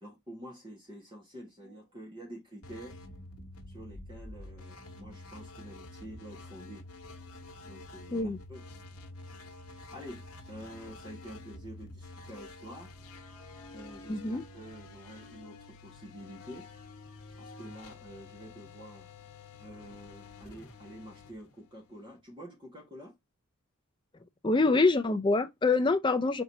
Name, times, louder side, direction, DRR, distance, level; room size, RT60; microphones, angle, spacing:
voice 1, 0.0-3.0 3.7-6.9 7.6-8.6 9.9-12.9 13.7-16.7 17.4-19.1 19.6-23.2, equal, 20° right, 1.5 m, -48 dB
sound 1, 2.6-22.2, left 2 dB, 85° left, 1.1 m, -49 dB
voice 2, 14.1-14.4 24.4-26.4, left 3 dB, 20° left, 0.4 m, -25 dB
4.6 x 3.9 x 2.6 m
head